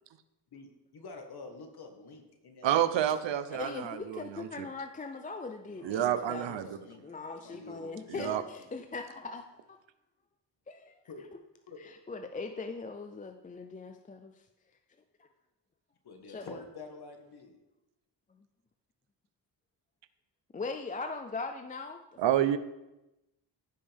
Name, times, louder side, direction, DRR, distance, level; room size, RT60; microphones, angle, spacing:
voice 1, 0.5-3.1 3.5-3.7 5.7-7.0 7.4-8.4 11.1-11.2 11.7-11.8 16.0-17.6, left 4 dB, 55° left, 4 dB, 1.5 m, -48 dB
voice 2, 2.6-4.7 5.8-6.7 8.1-8.4 22.2-22.6, right 11 dB, 75° right, 12 dB, 0.7 m, -29 dB
voice 3, 3.5-6.6 7.0-9.8 10.7-11.0 11.3-11.4 11.8-14.3 15.2-15.3 16.3-16.6 20.5-22.0 22.3-22.4, left 4 dB, 20° left, 6 dB, 0.4 m, -40 dB
15.0 x 5.4 x 3.5 m, 0.96 s
wide cardioid pair, 135°, 45 cm